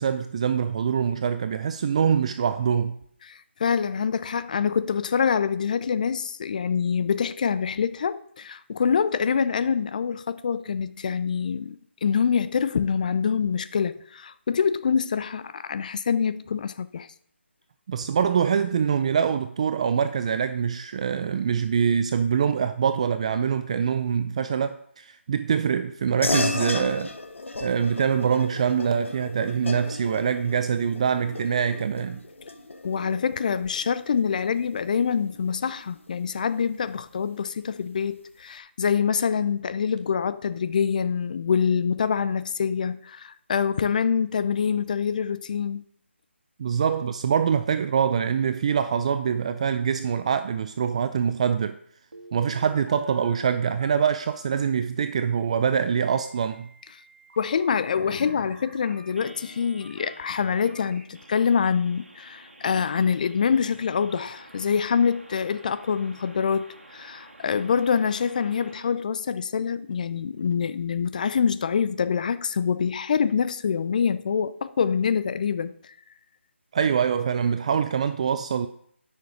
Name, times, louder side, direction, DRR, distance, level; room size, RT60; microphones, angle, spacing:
voice 1, 0.0-3.0 17.9-27.1 27.6-32.2 46.6-51.8 52.3-56.7 76.7-78.7, right 7 dB, 30° right, 0.4 m, -24 dB
voice 2, 3.2-17.1 32.8-45.8 57.4-75.9, left 6 dB, 40° left, 0.5 m, -25 dB
sound 1, 26.2-36.1, left 3 dB, 80° left, 1.1 m, -34 dB
Telephone, 52.1-54.6 56.0-68.9, right 1 dB, 75° right, 2.4 m, -49 dB
9.6 x 6.5 x 5.0 m
figure-of-eight pair, 160°, 7 cm